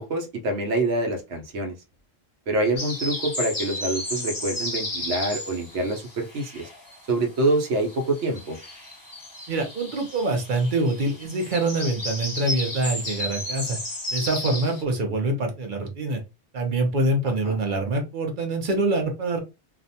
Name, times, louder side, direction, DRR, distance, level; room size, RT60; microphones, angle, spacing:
voice 1, 0.0-1.8 2.5-6.7 7.1-8.6 17.4-17.6, right 2 dB, 80° right, 3 dB, 1.0 m, -26 dB
sound 1, 2.8-7.1 7.4-14.8, left 1 dB, 20° left, 0.7 m, -33 dB
voice 2, 9.5-13.8 14.1-16.2 16.5-19.4, right 2 dB, 50° right, 3 dB, 0.8 m, -25 dB
2.5 x 2.2 x 2.6 m, 0.26 s
omnidirectional pair, 1.2 m